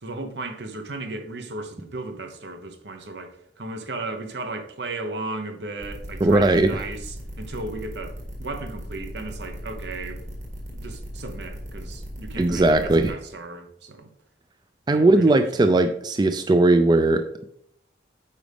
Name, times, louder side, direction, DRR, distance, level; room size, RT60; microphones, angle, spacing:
voice 1, 0.0-10.2 10.7-14.1 14.9-15.3, right 2 dB, 75° right, 1.0 m, -35 dB
sound 1, 5.8-13.1, equal, 45° right, 2.0 m, -37 dB
voice 2, 6.2-6.7 12.4-13.1 14.9-17.5, right 2 dB, 25° right, 0.3 m, -18 dB
8.7 x 5.0 x 3.4 m
head